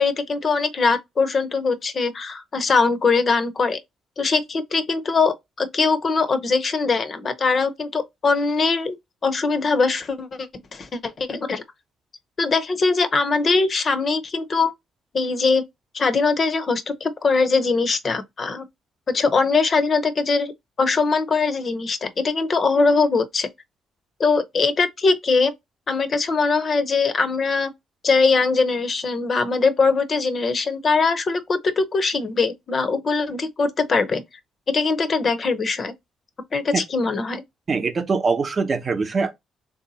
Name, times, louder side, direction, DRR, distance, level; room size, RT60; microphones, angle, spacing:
voice 1, 0.0-3.8 4.2-9.0 9.2-11.6 12.4-14.7 15.1-15.6 15.9-18.6 19.1-20.5 20.8-23.5 24.2-25.5 25.9-27.7 28.0-34.2 34.7-35.9 36.5-37.4, left 4 dB, 45° left, 0.7 m, -21 dB
voice 2, 37.7-39.3, right 4 dB, 40° right, 0.7 m, -23 dB
3.5 x 2.7 x 4.0 m
cardioid pair, 90°, 0 cm